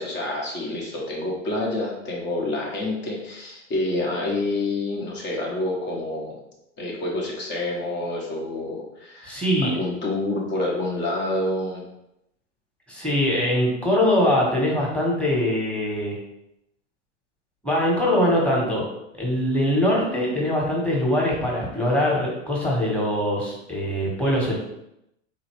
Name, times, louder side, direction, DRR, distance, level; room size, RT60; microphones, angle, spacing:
voice 1, 0.0-6.4 6.8-11.8, left 2 dB, 30° left, -3 dB, 1.0 m, -28 dB
voice 2, 9.2-9.7 12.9-16.2 17.6-18.8 19.1-24.5, left 1 dB, 5° left, -4 dB, 1.2 m, -22 dB
4.0 x 2.8 x 3.0 m, 0.84 s
figure-of-eight pair, 90°, 39 cm